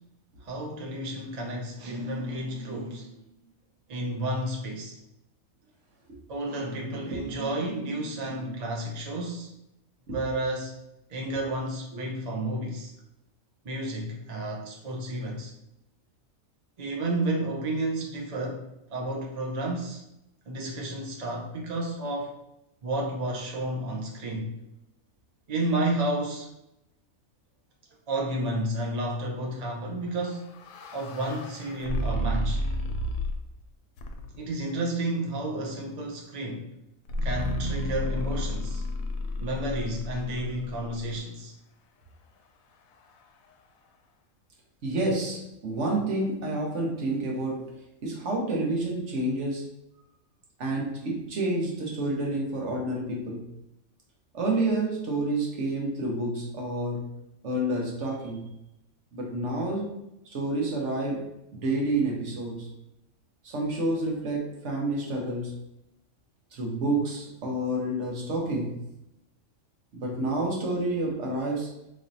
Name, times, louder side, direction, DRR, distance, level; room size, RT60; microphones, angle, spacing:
voice 1, 0.4-3.3 3.9-5.0 6.3-9.5 10.1-10.7 11.1-12.9 13.6-15.5 16.8-18.6 18.9-20.0 20.5-22.4 22.8-24.5 25.5-26.5 28.1-30.5 30.9-32.6 34.4-36.7 37.2-38.8 39.4-41.5, right 1 dB, 45° right, -1 dB, 0.6 m, -31 dB
sound 1, 30.2-33.5 34.0-34.5 37.1-41.2, left 1 dB, 80° left, 1.0 m, -32 dB
voice 2, 44.8-47.7 48.0-49.7 50.6-53.5 54.3-57.1 57.4-58.5 59.1-59.9 60.2-62.7 63.4-65.6 66.5-68.8 69.9-71.7, right 2 dB, 60° right, -1 dB, 1.2 m, -29 dB
4.2 x 3.1 x 2.7 m, 0.87 s
omnidirectional pair, 1.4 m